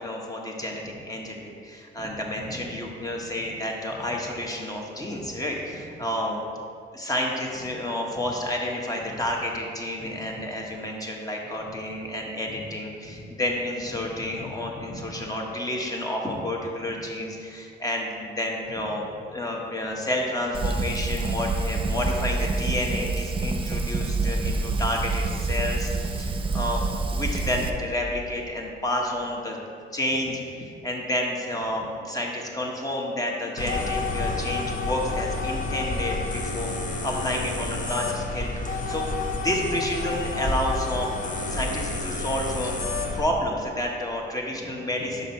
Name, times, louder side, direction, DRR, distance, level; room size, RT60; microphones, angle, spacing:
voice 1, 0.0-6.4 6.9-26.8 27.1-29.6 29.9-36.7 37.0-41.1 41.5-42.7 43.1-45.2, left 1 dB, 20° left, 0 dB, 1.0 m, -30 dB
Fire, 20.5-27.7, right 3 dB, 25° right, 0.4 m, -27 dB
sound 1, 33.6-43.2, left 2 dB, 40° left, 0.8 m, -29 dB
5.4 x 5.2 x 4.2 m, 2.3 s
cardioid pair, 90°, 20 cm